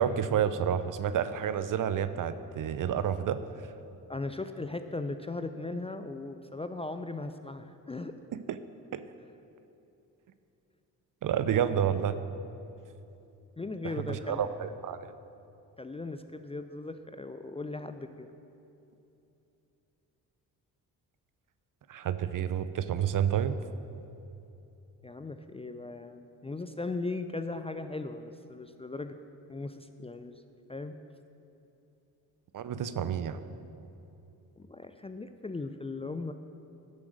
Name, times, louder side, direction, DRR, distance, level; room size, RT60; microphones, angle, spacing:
voice 1, 0.0-3.4 8.3-8.6 8.9-9.0 11.2-12.2 14.0-15.0 21.9-23.6 32.5-33.4, right 9 dB, 45° right, 12 dB, 0.7 m, -29 dB
voice 2, 4.1-8.1 13.6-14.5 15.8-18.3 25.0-29.2 29.5-30.4 30.7-30.9 34.6-36.3, left 3 dB, 15° left, 8 dB, 0.5 m, -38 dB
12.0 x 7.0 x 6.5 m, 2.8 s
hypercardioid pair, 45°, 47 cm